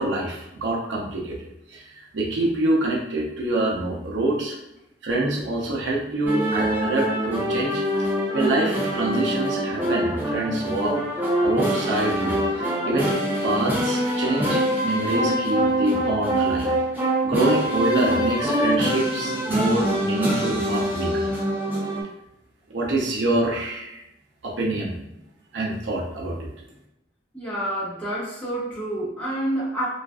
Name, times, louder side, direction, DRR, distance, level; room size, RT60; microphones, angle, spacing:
voice 1, 0.0-1.4 1.7-4.6 5.0-11.0 11.4-12.4 12.9-16.7 17.2-21.3 22.7-24.0 24.4-24.9 25.5-26.5, right 2 dB, 90° right, -2 dB, 0.6 m, -26 dB
sound 1, 6.3-22.0, equal, 10° right, 0.4 m, -24 dB
voice 2, 27.3-29.9, right 1 dB, 5° left, -10 dB, 1.1 m, -28 dB
2.4 x 2.4 x 2.3 m, 0.85 s
head